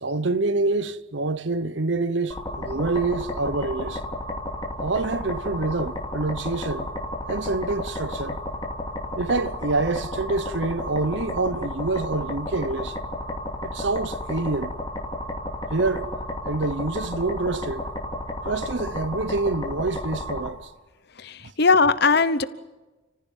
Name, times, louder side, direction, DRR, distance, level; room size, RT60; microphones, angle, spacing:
voice 1, 0.0-4.0 4.8-6.9 7.3-8.4 9.2-13.0 13.6-14.7 15.7-16.1 16.4-17.8 18.4-20.7 21.4-21.5, right 3 dB, 65° right, 0.9 m, -26 dB
sound 1, 2.3-20.5, left 1 dB, 20° left, 2.8 m, -32 dB
voice 2, 21.2-22.4, left 4 dB, 55° left, 1.0 m, -19 dB
30.0 x 15.0 x 9.2 m
head